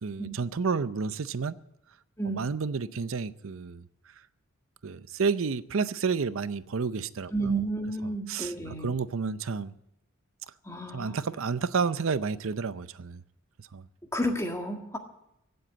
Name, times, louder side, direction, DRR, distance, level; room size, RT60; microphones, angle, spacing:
voice 1, 0.0-1.6 2.3-3.9 4.8-7.5 8.3-9.7 10.9-13.2 13.6-13.8, right 5 dB, 65° right, 0.6 m, -30 dB
voice 2, 7.3-9.0 10.6-11.2 14.1-15.0, right 1 dB, 15° left, 1.6 m, -31 dB
16.5 x 7.9 x 8.6 m
head